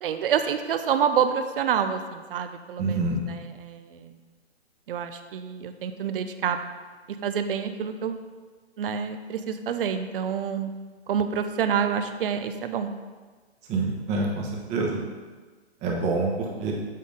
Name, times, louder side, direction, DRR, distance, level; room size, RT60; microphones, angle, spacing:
voice 1, 0.0-4.1 4.9-6.6 7.2-8.2 8.8-10.7 11.1-12.9, right 7 dB, 55° right, 9 dB, 0.7 m, -27 dB
voice 2, 2.8-3.2 13.7-15.0 15.8-16.7, right 3 dB, 20° right, -1 dB, 1.0 m, -26 dB
7.5 x 4.0 x 5.0 m, 1.4 s
hypercardioid pair, 145°, 34 cm